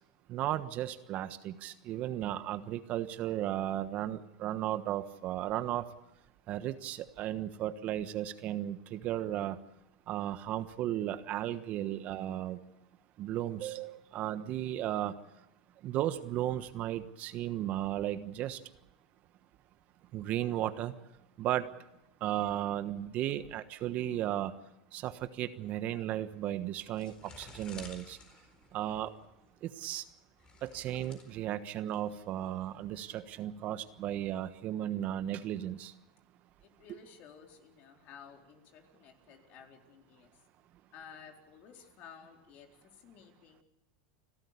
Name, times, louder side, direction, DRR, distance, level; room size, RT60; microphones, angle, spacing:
voice 1, 0.3-5.8 6.5-9.6 10.1-12.6 13.2-15.1 15.8-18.6 20.1-20.9 21.4-21.7 22.2-24.5 24.9-28.2 28.7-29.1 29.6-30.0 30.6-35.9 36.9-37.0, right 12 dB, 45° right, 12 dB, 1.3 m, -35 dB
sound 1, 26.3-33.9, left 4 dB, 25° left, 4.3 m, -55 dB
voice 2, 36.6-40.3 40.9-43.6, left 7 dB, 50° left, 3 dB, 4.1 m, -54 dB
29.5 x 13.0 x 8.4 m, 0.93 s
hypercardioid pair, 110°, 3 cm